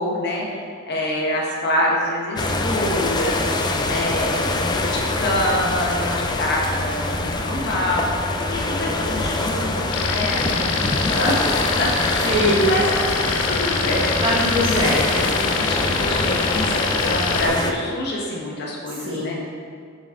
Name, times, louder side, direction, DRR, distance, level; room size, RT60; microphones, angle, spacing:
voice 1, 0.0-11.4 11.8-12.3 12.6-14.1 14.7-14.8 15.1-19.3, left 1 dB, 55° left, -3 dB, 1.1 m, -26 dB
sound 1, 2.4-17.7, left 2 dB, 20° left, 0.3 m, -24 dB
sound 2, 9.9-17.5, left 6 dB, 85° left, 0.5 m, -25 dB
voice 2, 12.2-12.7 14.2-15.2 19.0-19.3, equal, 25° right, -8 dB, 1.4 m, -21 dB
6.9 x 4.1 x 3.7 m, 2.2 s
head